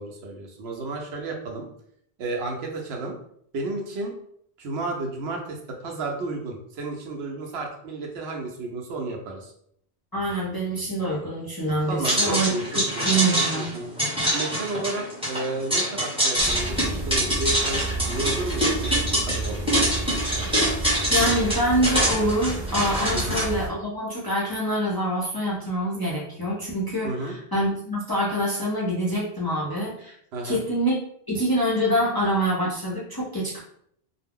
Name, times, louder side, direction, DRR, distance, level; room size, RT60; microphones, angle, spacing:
voice 1, 0.0-1.7 2.2-3.1 3.5-4.1 4.6-9.5 11.9-13.9 14.3-19.9 20.3-20.7 23.1-23.4 27.0-27.3 30.3-30.6, right 2 dB, 75° right, 1 dB, 0.9 m, -32 dB
voice 2, 10.1-12.5 13.0-13.7 21.1-30.1 30.4-31.0 31.3-33.6, right 1 dB, 30° left, -6 dB, 0.4 m, -25 dB
sound 1, 12.0-23.4, right 1 dB, 5° right, 0.8 m, -25 dB
sound 2, 16.4-23.7, right 2 dB, 35° right, 0.5 m, -32 dB
2.3 x 2.0 x 3.5 m, 0.68 s
omnidirectional pair, 1.1 m